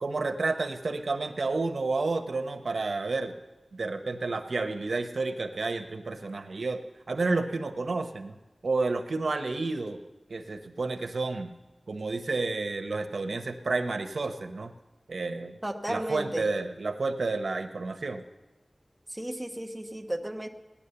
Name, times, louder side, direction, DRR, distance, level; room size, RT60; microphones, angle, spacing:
voice 1, 0.0-3.3 3.7-6.8 7.1-8.4 8.6-10.0 10.3-11.5 11.9-14.7 15.1-15.5 15.9-18.2, right 3 dB, 85° right, 6 dB, 0.9 m, -30 dB
voice 2, 15.6-16.5 19.1-20.5, right 1 dB, 15° right, 3 dB, 1.1 m, -34 dB
17.0 x 10.0 x 6.8 m, 1.1 s
wide cardioid pair, 70°, 0 cm